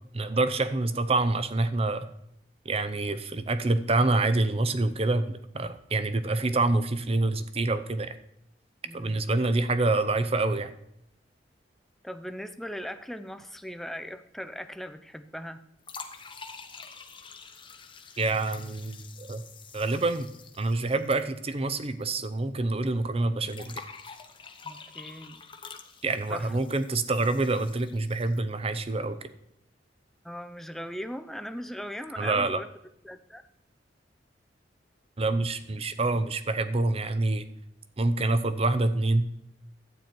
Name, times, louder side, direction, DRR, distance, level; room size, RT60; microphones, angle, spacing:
voice 1, 0.1-2.1 2.6-8.2 8.9-10.7 18.2-19.4 19.7-20.3 20.6-23.8 26.0-29.2 32.2-32.6 35.2-37.5 38.0-39.3, right 2 dB, 35° right, 12 dB, 0.7 m, -26 dB
voice 2, 8.8-9.2 12.0-15.6 24.6-25.4 26.3-26.6 30.2-32.7 33.0-33.4, equal, ahead, 9 dB, 0.5 m, -39 dB
sound 1, 15.8-22.0 22.3-22.4 23.5-28.5, left 5 dB, 30° left, 1.0 m, -47 dB
12.0 x 8.8 x 4.6 m, 0.75 s
head